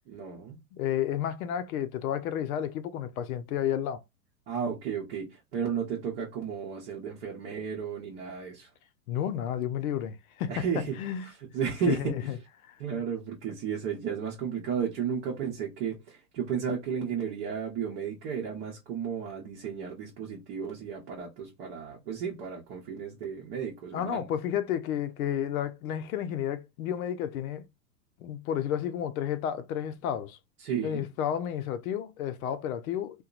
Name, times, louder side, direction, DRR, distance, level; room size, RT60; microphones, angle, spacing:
voice 1, 0.1-0.6 4.5-8.7 10.5-11.0 11.3-12.0 12.8-24.2 30.6-31.1, right 7 dB, 40° right, 0.9 m, -33 dB
voice 2, 0.7-4.0 9.1-10.6 11.0-11.3 11.9-12.2 12.7-12.8 23.9-27.7 28.2-30.4 30.8-33.2, left 10 dB, 60° left, 0.6 m, -31 dB
2.7 x 2.2 x 2.4 m
hypercardioid pair, 130°, 49 cm